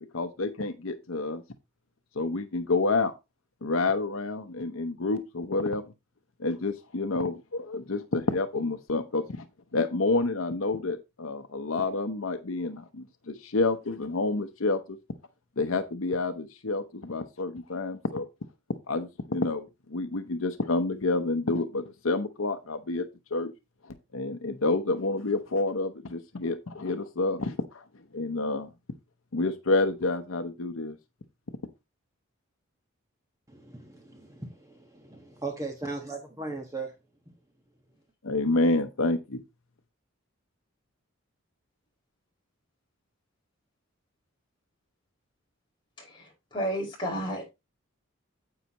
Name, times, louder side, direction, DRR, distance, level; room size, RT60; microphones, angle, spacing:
voice 1, 0.1-1.4 2.2-3.1 3.6-5.8 6.4-9.5 9.7-15.0 15.6-18.3 18.9-23.1 23.3-23.5 23.8-27.8 28.1-28.7 29.3-31.0 38.2-39.4, left 3 dB, 75° left, 0.8 m, -29 dB
voice 2, 33.5-36.9, right 3 dB, 15° right, 1.4 m, -38 dB
voice 3, 46.0-47.4, equal, 20° left, 5.4 m, -32 dB
9.8 x 8.1 x 3.0 m
head